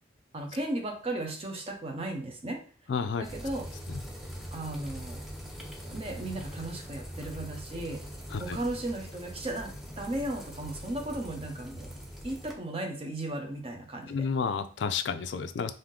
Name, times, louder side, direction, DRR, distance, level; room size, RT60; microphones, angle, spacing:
voice 1, 0.3-2.6 3.2-3.7 4.5-5.3 5.8-8.0 8.4-11.9 12.2-14.3, right 1 dB, 30° right, 3 dB, 0.7 m, -35 dB
voice 2, 2.9-3.2 8.3-8.6 14.1-15.7, left 5 dB, 75° left, 10 dB, 0.4 m, -30 dB
sound 1, 3.2-12.5, equal, ahead, 0.5 m, -42 dB
3.5 x 2.6 x 3.7 m, 0.41 s
head